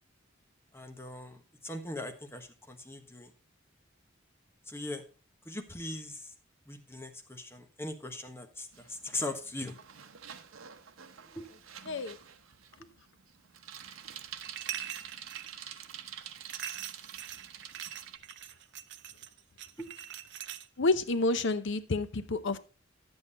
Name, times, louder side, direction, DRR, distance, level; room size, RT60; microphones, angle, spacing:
voice 1, 0.7-3.3 4.7-5.0 5.4-6.3 6.7-9.8 11.3-11.5 19.8-19.9, left 1 dB, 10° left, 1.2 m, -40 dB
Bicycle, 8.7-18.2, right 9 dB, 85° right, 0.8 m, -48 dB
voice 2, 11.9-12.2 20.8-22.6, left 2 dB, 65° left, 0.7 m, -29 dB
sound 1, 14.4-15.5 16.5-20.9, right 11 dB, 60° right, 0.6 m, -42 dB
10.5 x 7.9 x 4.2 m
head